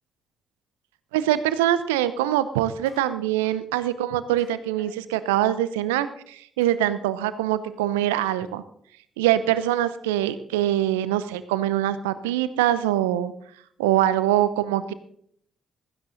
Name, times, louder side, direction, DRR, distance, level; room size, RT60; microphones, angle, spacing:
voice 1, 1.1-8.6 9.2-13.3 13.8-14.9, right 12 dB, 80° right, 14 dB, 0.7 m, -23 dB
sound 1, 2.8-3.1 3.4-3.6 4.4-4.9 6.6-6.7 7.7-7.8, left 3 dB, 55° left, 7.7 m, -52 dB
16.0 x 14.0 x 4.0 m, 0.66 s
figure-of-eight pair, 40°, 0 cm